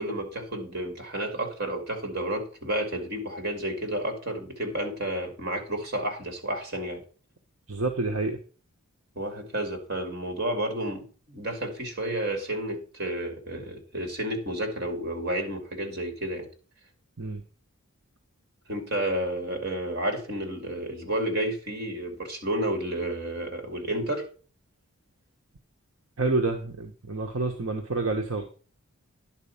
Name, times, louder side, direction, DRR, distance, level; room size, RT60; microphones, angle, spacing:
voice 1, 0.0-7.0 9.2-16.5 18.7-24.3, right 1 dB, 45° right, 4 dB, 2.4 m, -31 dB
voice 2, 7.7-8.4 17.2-17.4 26.2-28.4, right 3 dB, 65° right, 3 dB, 1.1 m, -28 dB
10.5 x 4.3 x 7.1 m, 0.39 s
head